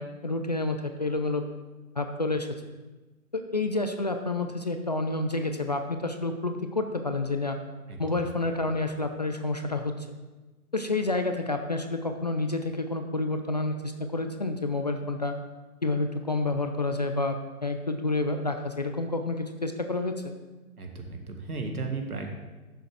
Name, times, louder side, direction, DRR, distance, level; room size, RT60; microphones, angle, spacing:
voice 1, 0.0-1.4 2.0-2.5 3.3-7.6 8.0-10.1 10.7-15.3 15.8-20.3, left 2 dB, 30° left, 6 dB, 0.4 m, -29 dB
voice 2, 20.8-22.3, right 3 dB, 80° right, 3 dB, 2.0 m, -34 dB
10.0 x 6.9 x 4.7 m, 1.2 s
figure-of-eight pair, 140°, 44 cm